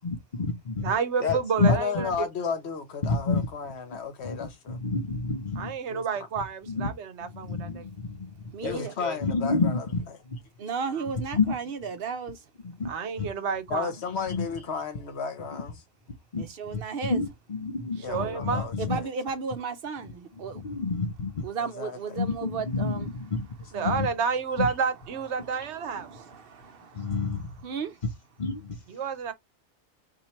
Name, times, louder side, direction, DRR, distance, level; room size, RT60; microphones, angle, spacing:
voice 1, 0.0-0.9 1.2-2.0 3.0-3.5 4.2-5.7 6.7-6.9 7.2-9.8 11.3-11.5 12.6-12.9 13.2-13.3 14.2-14.5 16.3-16.4 17.0-19.0 20.5-21.4 22.2-23.5 23.8-24.1 24.6-24.7 26.9-27.5 28.4-28.8, left 4 dB, 45° left, 0.8 m, -29 dB
voice 2, 0.8-2.3 5.6-7.9 10.9-11.0 12.8-13.9 18.1-18.7 23.7-26.1 28.9-29.3, right 6 dB, 75° right, 1.0 m, -30 dB
voice 3, 1.7-4.8 5.9-6.0 8.6-9.9 13.7-15.8 18.0-19.1 21.6-22.2, left 6 dB, 65° left, 1.1 m, -33 dB
voice 4, 8.5-8.9 10.6-12.4 16.4-17.2 18.8-20.6 21.4-23.1 26.0-27.1 27.6-28.0, right 5 dB, 60° right, 0.8 m, -34 dB
2.9 x 2.6 x 4.3 m
omnidirectional pair, 1.2 m